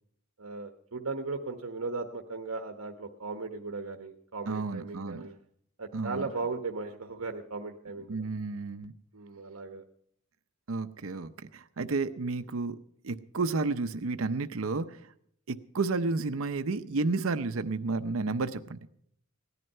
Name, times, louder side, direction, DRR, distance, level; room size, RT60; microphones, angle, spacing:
voice 1, 0.4-5.4 5.8-8.2 9.1-9.8, right 3 dB, 90° right, 4 dB, 1.1 m, -37 dB
voice 2, 4.5-5.3 5.9-6.3 8.1-8.9 10.7-12.8 13.0-15.1 15.5-18.9, right 3 dB, 70° right, 11 dB, 0.7 m, -31 dB
17.0 x 11.0 x 5.5 m, 0.67 s
head